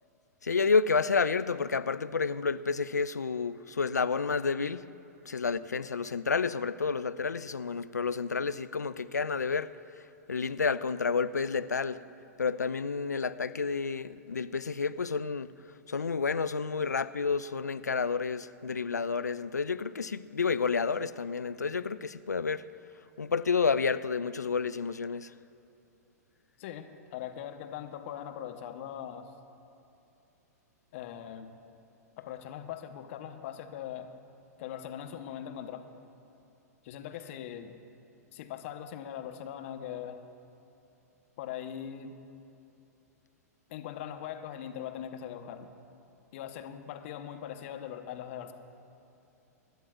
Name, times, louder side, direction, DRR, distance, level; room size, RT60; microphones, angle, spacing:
voice 1, 0.4-4.8 5.3-9.7 10.3-12.0 12.4-15.5 15.9-22.6 23.2-25.3, left 5 dB, 85° left, 0.4 m, -30 dB
voice 2, 26.6-29.3 30.9-31.5 32.2-34.1 34.6-35.8 36.8-37.7 38.3-40.2 41.4-42.1 43.7-45.7 46.3-48.5, left 10 dB, 50° left, 1.0 m, -41 dB
25.0 x 11.5 x 2.5 m
figure-of-eight pair, 105°, 9 cm